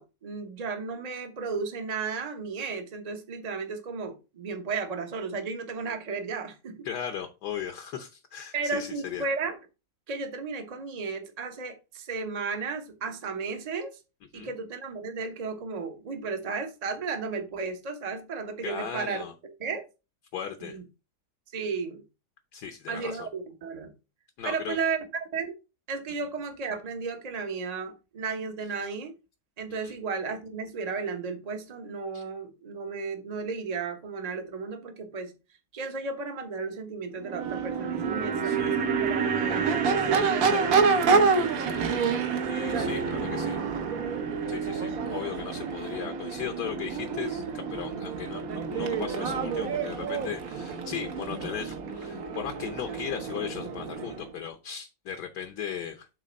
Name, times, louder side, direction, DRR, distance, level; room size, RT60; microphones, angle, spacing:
voice 1, 0.0-6.9 8.5-9.6 10.1-14.0 14.3-19.2 19.6-19.8 20.6-20.8 21.5-22.0 22.9-23.9 24.4-25.0 25.3-25.5 25.9-29.1 29.6-35.3 35.7-41.2, right 4 dB, 30° right, 0.7 m, -34 dB
voice 2, 6.8-9.2 14.3-14.5 18.6-19.3 20.3-20.8 22.5-23.3 24.4-24.8 29.8-30.0 32.1-32.2 38.4-38.8 41.7-42.1 42.5-43.6 44.5-56.1, left 8 dB, 60° left, 1.2 m, -37 dB
Crowd / Race car auto racing / Accelerating revving vroom, 37.2-54.3, right 4 dB, 55° right, 1.1 m, -29 dB
sound 1, 37.6-47.8 48.1-48.2, right 8 dB, 80° right, 1.9 m, -33 dB
7.6 x 3.3 x 5.2 m
omnidirectional pair, 2.3 m